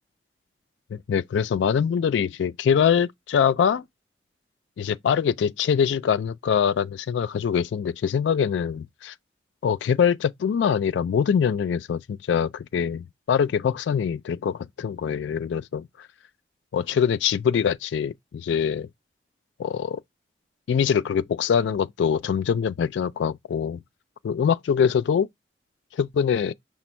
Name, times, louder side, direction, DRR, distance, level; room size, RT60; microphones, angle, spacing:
voice 1, 0.9-3.8 4.8-9.1 9.6-16.1 16.7-18.9 19.6-20.0 20.7-23.8 24.2-25.3 25.9-26.5, left 7 dB, 85° left, 0.3 m, -23 dB
5.9 x 2.1 x 4.2 m
head